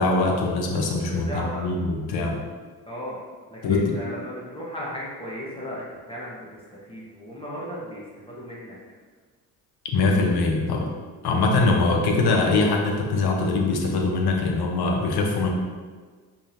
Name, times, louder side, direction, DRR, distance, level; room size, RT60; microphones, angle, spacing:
voice 1, 0.0-1.3 1.6-2.4 3.6-3.9 9.9-10.9 11.2-15.5, left 3 dB, 60° left, 1 dB, 1.0 m, -22 dB
voice 2, 1.1-1.6 2.8-3.2 3.5-8.8, equal, 10° left, -7 dB, 1.4 m, -36 dB
5.2 x 3.6 x 2.7 m, 1.5 s
hypercardioid pair, 55°, 43 cm